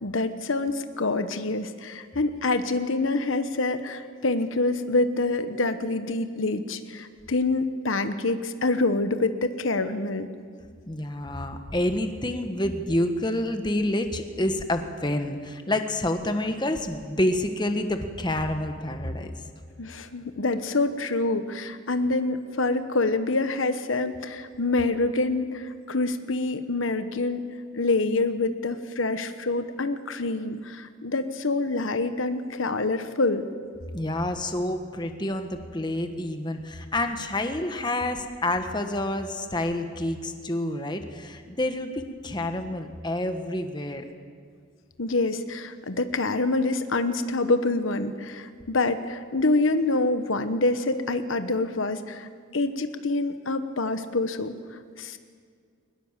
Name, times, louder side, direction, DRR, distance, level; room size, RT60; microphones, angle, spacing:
voice 1, 0.0-10.3 19.8-27.4 27.7-33.5 45.0-52.3 52.5-54.5 55.0-55.2, left 2 dB, 80° left, 10 dB, 1.2 m, -26 dB
voice 2, 10.9-19.3 33.9-44.0, left 1 dB, 20° left, 6 dB, 1.4 m, -28 dB
22.5 x 20.5 x 7.5 m, 2.1 s
head